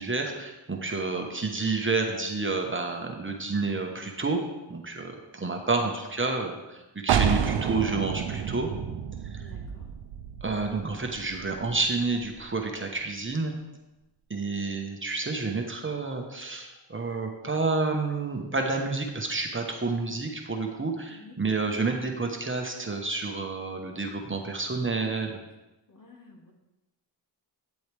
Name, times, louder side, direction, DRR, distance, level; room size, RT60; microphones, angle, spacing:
voice 1, 0.0-4.4 4.7-8.7 9.3-9.4 10.4-13.5 14.3-25.4, right 3 dB, 25° right, 3 dB, 1.1 m, -29 dB
sound 1, 7.1-12.6, right 8 dB, 75° right, 0.6 m, -30 dB
voice 2, 9.4-9.9 21.1-21.4 25.9-26.5, left 3 dB, 45° left, 1 dB, 1.8 m, -51 dB
9.4 x 7.7 x 3.4 m, 1.0 s
cardioid pair, 70°, 43 cm